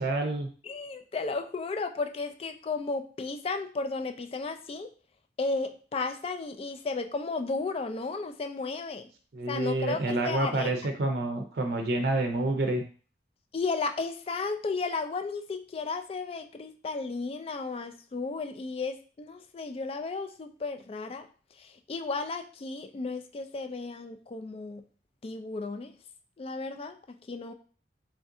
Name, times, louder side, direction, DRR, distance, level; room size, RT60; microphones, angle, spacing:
voice 1, 0.0-0.5 9.3-12.8, right 2 dB, 65° right, 3 dB, 0.5 m, -28 dB
voice 2, 0.6-4.9 5.4-9.1 9.5-10.7 13.5-21.3 21.6-24.8 25.2-25.9 26.4-27.5, left 3 dB, 35° left, 7 dB, 0.3 m, -34 dB
3.2 x 2.6 x 3.6 m, 0.40 s
head